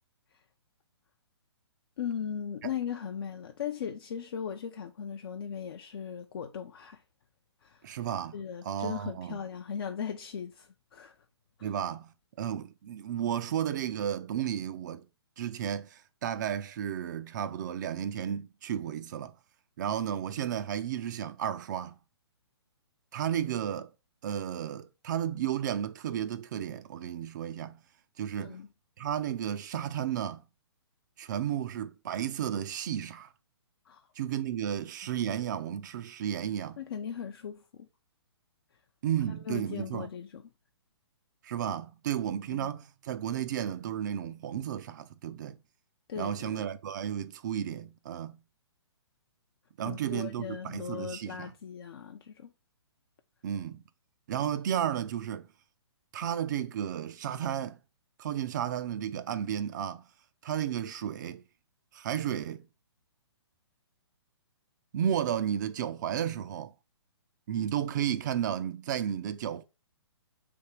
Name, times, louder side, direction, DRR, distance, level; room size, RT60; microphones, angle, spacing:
voice 1, 2.0-7.0 7.6-7.8 8.3-11.1 11.6-11.7 28.4-28.7 33.9-34.0 36.8-37.9 39.5-40.4 42.5-42.7 46.1-46.7 49.8-52.5, left 7 dB, 60° left, 0.5 m, -38 dB
voice 2, 7.8-8.4 8.6-9.4 11.6-15.0 15.4-19.3 19.8-22.0 23.1-23.9 24.2-27.8 28.2-28.6 29.0-30.4 31.2-33.3 34.2-36.8 39.0-40.1 41.4-45.6 46.2-48.4 49.8-51.5 53.4-53.8 54.3-55.5 56.1-57.8 58.2-60.0 60.4-61.4 61.9-62.7 64.9-66.7 67.5-69.6, right 10 dB, 45° right, 0.4 m, -33 dB
3.5 x 2.9 x 4.3 m
figure-of-eight pair, 125°, 14 cm